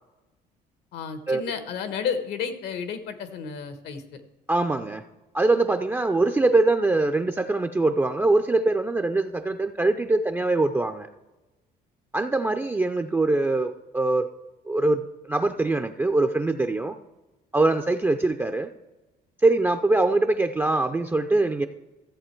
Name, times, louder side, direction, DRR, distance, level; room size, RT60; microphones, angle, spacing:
voice 1, 0.9-4.2, left 6 dB, 80° left, 10 dB, 1.2 m, -32 dB
voice 2, 4.5-5.0 5.3-11.1 12.1-14.3 14.7-17.0 17.5-18.7 19.4-21.7, right 2 dB, 10° right, 6 dB, 0.4 m, -23 dB
13.5 x 7.5 x 4.4 m, 1.1 s
cardioid pair, 110°, 17 cm